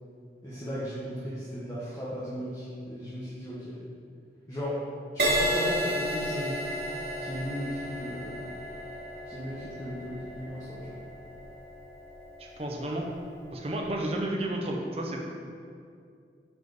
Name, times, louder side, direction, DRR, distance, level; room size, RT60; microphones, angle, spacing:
voice 1, 0.4-3.8 4.5-4.8 5.1-6.6 7.2-8.5 9.2-11.0, equal, 20° left, -9 dB, 1.3 m, -36 dB
Crash cymbal, 5.2-12.8 13.5-13.8, equal, 60° right, 1.5 m, -32 dB
voice 2, 12.6-13.1 13.5-15.4, right 1 dB, 35° right, 0 dB, 0.9 m, -32 dB
8.2 x 4.9 x 4.9 m, 2.3 s
head